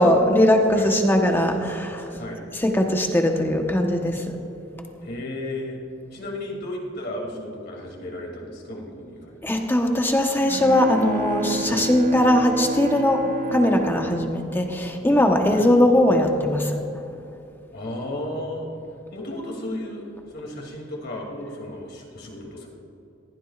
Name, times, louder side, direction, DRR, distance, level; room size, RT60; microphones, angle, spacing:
voice 1, 0.0-2.0 2.6-4.4 9.4-13.2 13.5-16.8, left 1 dB, 10° left, 3 dB, 1.1 m, -20 dB
voice 2, 5.0-5.8 6.1-9.4 11.7-11.9 15.5-15.6 17.7-18.7 19.1-22.7, left 1 dB, 55° left, -1 dB, 2.8 m, -34 dB
Bowed string instrument, 10.2-15.6, right 2 dB, 40° right, 0.4 m, -32 dB
20.0 x 15.0 x 2.5 m, 2.9 s
head